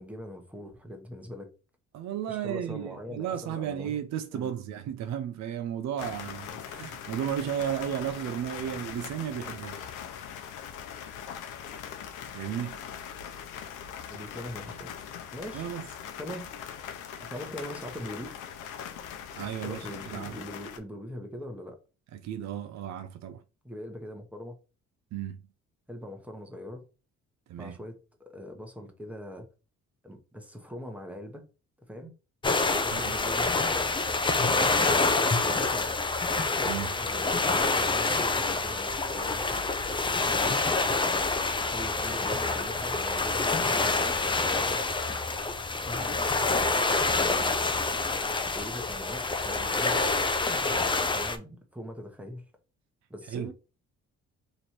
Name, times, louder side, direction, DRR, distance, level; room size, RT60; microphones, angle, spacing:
voice 1, 0.0-1.5 2.3-3.9 4.3-4.5 14.1-14.9 15.3-15.7 16.2-16.5 17.2-18.3 19.6-21.8 23.6-24.6 25.9-26.9 27.6-29.5 30.0-31.5 31.9-32.1 32.8-33.5 34.5-35.9 36.9-39.7 40.2-40.8 41.7-44.8 45.8-46.2 46.6-47.4 48.4-50.1 51.1-52.5 53.1-53.5, equal, 5° right, 1.0 m, -41 dB
voice 2, 1.9-9.9 12.3-12.8 15.5-15.9 19.3-20.3 22.1-23.4 25.1-25.4 27.5-27.8 32.9-33.2 36.7-37.0 53.3-53.5, right 10 dB, 65° right, 0.5 m, -34 dB
sound 1, 6.0-20.8, left 8 dB, 90° left, 0.6 m, -41 dB
sound 2, 32.4-51.4, left 3 dB, 15° left, 0.5 m, -27 dB
3.1 x 2.6 x 4.2 m
cardioid pair, 90°, 30 cm